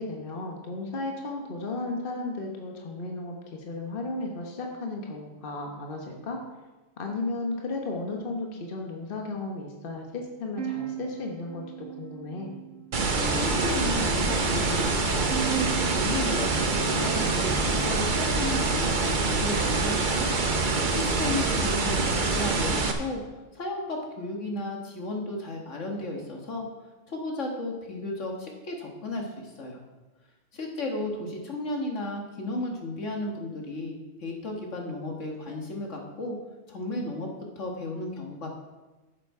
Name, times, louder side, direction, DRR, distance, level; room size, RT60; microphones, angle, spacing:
voice 1, 0.0-6.4 7.0-12.5 21.2-22.1, left 2 dB, 45° left, 1 dB, 1.4 m, -34 dB
sound 1, 10.6-17.7, right 7 dB, 85° right, 1.5 m, -39 dB
sound 2, 12.9-22.9, right 3 dB, 45° right, 1.0 m, -25 dB
voice 2, 13.3-20.4 20.9-23.2 23.5-26.6 27.1-29.8 30.5-36.4 36.7-37.3 37.6-38.6, left 2 dB, 75° left, 0 dB, 2.0 m, -34 dB
11.5 x 7.6 x 4.8 m, 1.2 s
omnidirectional pair, 1.3 m